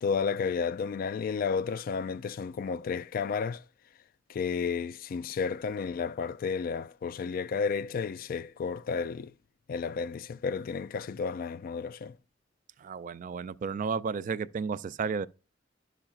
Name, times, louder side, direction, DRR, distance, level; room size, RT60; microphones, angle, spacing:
voice 1, 0.0-3.6 4.3-9.3 9.7-12.1, left 5 dB, 50° left, 0.3 m, -32 dB
voice 2, 12.8-15.3, right 5 dB, 40° right, 0.3 m, -33 dB
10.5 x 5.8 x 2.4 m
head